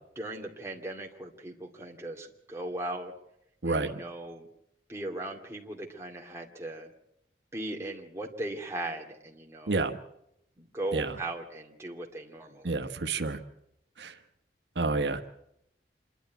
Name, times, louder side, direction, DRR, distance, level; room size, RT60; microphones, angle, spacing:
voice 1, 0.2-3.1 3.7-4.5 4.9-6.9 7.5-9.8 10.6-13.0, right 1 dB, 15° right, 0 dB, 2.3 m, -38 dB
voice 2, 3.6-3.9 9.7-9.9 10.9-11.1 12.6-13.4 14.0-14.2 14.7-15.4, right 3 dB, 80° right, 6 dB, 1.3 m, -29 dB
26.5 x 11.5 x 9.2 m, 0.79 s
head